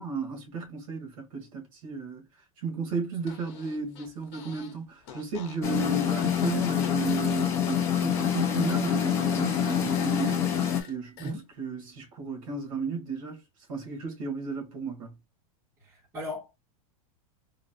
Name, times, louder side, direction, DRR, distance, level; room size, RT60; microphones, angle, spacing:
voice 1, 0.0-2.3 2.6-13.4 13.7-15.1, right 4 dB, 65° right, 2.0 m, -34 dB
Fart, 3.2-4.8 5.0-8.3 8.5-11.3, left 7 dB, 50° left, 1.1 m, -47 dB
sound 1, 5.6-10.8, left 8 dB, 15° left, 0.4 m, -26 dB
voice 2, 15.8-16.5, left 1 dB, 15° right, 1.3 m, -37 dB
3.9 x 2.3 x 2.6 m
supercardioid pair, 180°, 19 cm